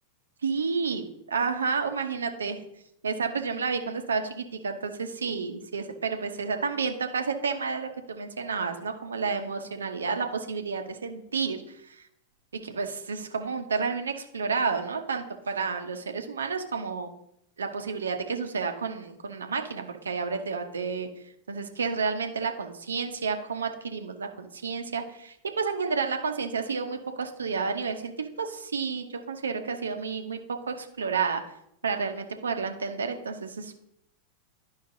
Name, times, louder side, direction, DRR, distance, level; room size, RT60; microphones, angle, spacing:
voice 1, 0.4-2.6 3.0-12.1 12.6-17.1 17.6-21.1 21.5-30.4 30.7-31.4 31.8-33.7, right 5 dB, 70° right, 6 dB, 0.9 m, -30 dB
11.5 x 5.6 x 2.7 m, 0.75 s
figure-of-eight pair, 90°, 0 cm